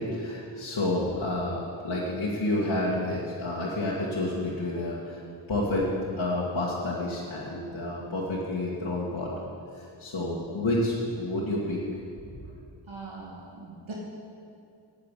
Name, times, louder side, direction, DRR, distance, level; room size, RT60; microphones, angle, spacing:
voice 1, 0.0-5.2 5.5-5.9 6.2-9.5 9.7-11.8, left 1 dB, 60° left, -7 dB, 2.1 m, -29 dB
voice 2, 12.9-13.9, right 3 dB, 80° right, -4 dB, 2.2 m, -41 dB
9.3 x 8.7 x 8.3 m, 2.5 s
cardioid pair, 40°, 47 cm